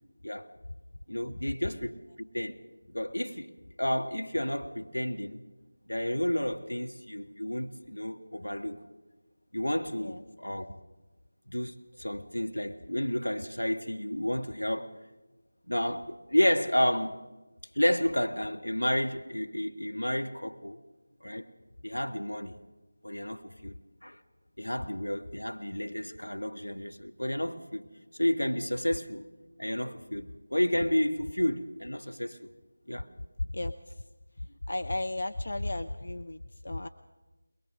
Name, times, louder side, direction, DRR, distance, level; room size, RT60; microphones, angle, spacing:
voice 1, 1.1-2.6 2.9-3.5 3.8-5.4 5.9-8.8 9.5-10.7 11.5-14.9 15.7-17.2 17.7-20.8 21.2-21.5 21.8-22.6 23.0-23.7 24.0-24.2 24.6-27.9 28.1-29.3 29.6-32.5 32.9-33.1, left 1 dB, 80° left, 1.7 m, -31 dB
voice 2, 33.4-34.0 34.4-36.9, left 2 dB, 50° left, 0.8 m, -34 dB
22.0 x 22.0 x 6.3 m
figure-of-eight pair, 165°, 0 cm